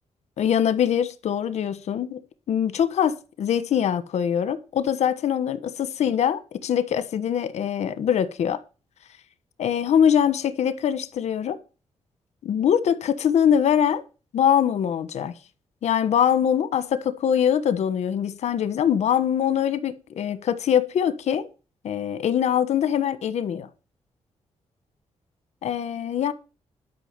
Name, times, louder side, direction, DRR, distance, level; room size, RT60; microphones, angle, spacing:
voice 1, 0.4-2.2 2.5-8.6 9.6-11.6 12.4-14.0 14.3-15.3 15.8-21.5 21.8-23.7 25.6-26.3, left 9 dB, 80° left, 1.3 m, -23 dB
12.0 x 5.9 x 7.5 m
wide cardioid pair, 165°, 11 cm